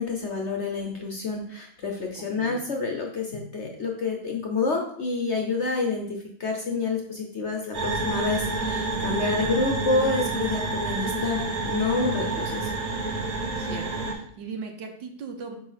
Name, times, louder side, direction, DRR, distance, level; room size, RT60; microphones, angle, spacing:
voice 1, 0.0-12.7, left 3 dB, 55° left, 2 dB, 0.8 m, -28 dB
sound 1, 7.7-14.1, right 3 dB, 25° right, 1.2 m, -29 dB
voice 2, 9.4-9.7 13.5-15.6, right 5 dB, 85° right, 3 dB, 1.7 m, -38 dB
5.2 x 4.7 x 5.8 m, 0.64 s
omnidirectional pair, 1.9 m